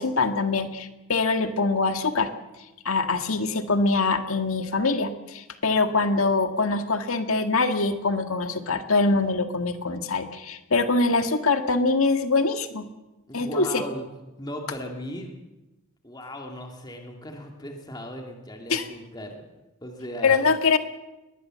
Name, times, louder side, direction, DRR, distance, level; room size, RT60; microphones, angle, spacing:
voice 1, 0.0-2.3 2.8-12.9 13.3-13.8 18.7-18.9 20.2-20.8, left 3 dB, 75° left, 8 dB, 1.8 m, -23 dB
voice 2, 13.3-14.1 14.4-15.4 16.0-19.5 19.8-20.5, left 1 dB, 20° left, 2 dB, 2.3 m, -37 dB
22.0 x 19.5 x 7.6 m, 1.0 s
head